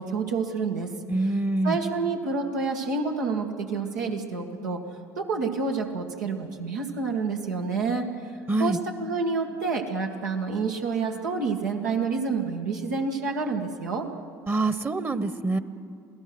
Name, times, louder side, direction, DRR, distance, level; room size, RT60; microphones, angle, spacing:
voice 1, 0.0-0.9 1.6-4.8 5.2-8.1 8.6-14.1, right 4 dB, 90° right, 1 dB, 2.0 m, -28 dB
voice 2, 1.1-1.8 8.5-8.8 14.5-15.6, right 2 dB, 25° right, 13 dB, 1.2 m, -25 dB
27.5 x 17.5 x 6.2 m, 2.5 s
hypercardioid pair, 65°, 9 cm